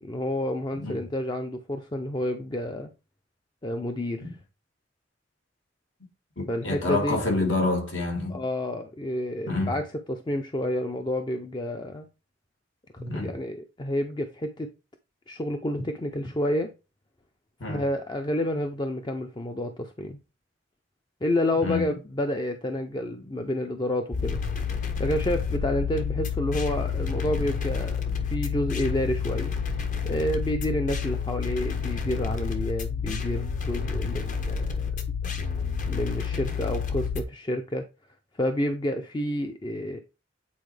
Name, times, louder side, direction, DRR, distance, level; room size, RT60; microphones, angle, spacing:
voice 1, 0.0-2.9 3.6-4.3 6.5-7.2 8.3-12.1 12.9-14.7 15.3-16.7 17.7-20.2 21.2-24.4 25.0-29.5 30.0-34.9 35.9-37.9 38.3-40.0, left 1 dB, 25° left, 0.5 m, -29 dB
voice 2, 6.4-8.4 9.5-9.7 13.0-13.3 17.6-17.8 21.6-21.8, left 2 dB, 80° left, 2.2 m, -27 dB
sound 1, 24.1-37.2, left 6 dB, 45° left, 0.9 m, -29 dB
8.5 x 4.1 x 3.3 m
head